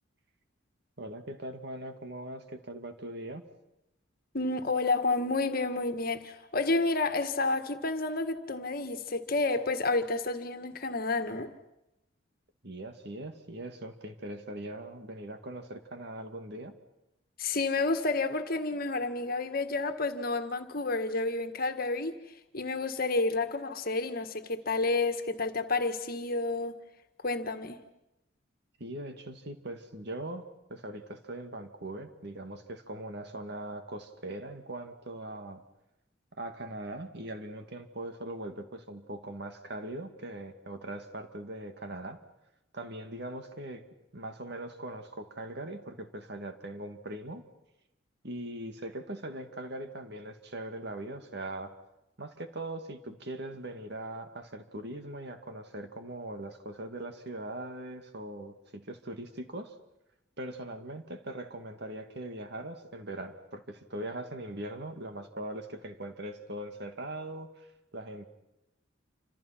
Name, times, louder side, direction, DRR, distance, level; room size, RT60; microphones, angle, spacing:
voice 1, 1.0-3.4 12.6-16.8 28.8-30.4 30.7-35.6 36.4-42.2 42.7-43.8 44.1-47.4 48.2-51.7 52.2-59.7 60.4-67.7 67.9-68.3, right 1 dB, 55° right, 2.3 m, -41 dB
voice 2, 4.3-11.5 17.4-22.1 22.5-26.8 27.2-27.8, left 3 dB, 50° left, 1.8 m, -30 dB
28.5 x 26.5 x 6.0 m
head